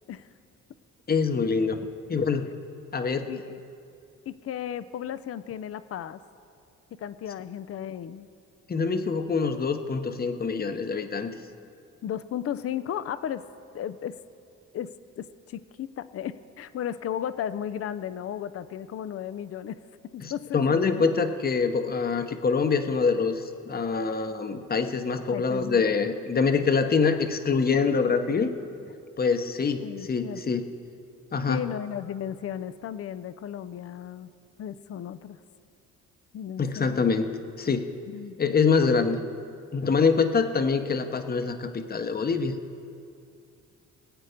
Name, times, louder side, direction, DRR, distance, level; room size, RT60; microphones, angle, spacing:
voice 1, 1.1-2.5 2.9-3.3 8.7-11.3 20.2-28.5 29.2-30.7 31.3-31.6 36.6-37.9 38.4-39.2 39.7-42.6, left 5 dB, 30° left, 7 dB, 0.9 m, -25 dB
voice 2, 3.3-3.6 4.3-6.2 6.9-8.3 12.0-13.4 13.7-14.2 14.7-19.8 20.1-21.1 22.3-22.4 25.3-25.9 29.8-30.6 31.5-34.3 34.6-35.4 36.3-37.0 38.1-38.4 42.0-42.1, left 9 dB, 50° left, 14 dB, 0.6 m, -35 dB
22.5 x 8.1 x 5.1 m, 2.4 s
cardioid pair, 90°, 30 cm